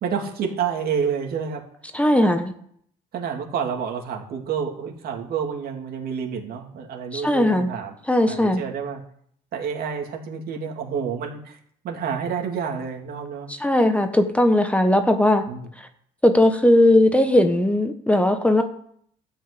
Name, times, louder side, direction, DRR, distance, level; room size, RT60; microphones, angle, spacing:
voice 1, 0.0-1.6 1.9-2.3 3.1-7.9 8.3-9.0 9.5-11.6 11.8-13.5 15.5-15.7, right 7 dB, 65° right, 2 dB, 2.6 m, -29 dB
voice 2, 1.9-2.5 7.1-7.7 8.1-8.6 13.5-15.4 15.8-15.9 16.2-18.6, left 1 dB, 5° left, 7 dB, 1.2 m, -18 dB
13.0 x 5.7 x 8.3 m, 0.65 s
cardioid pair, 110°, 17 cm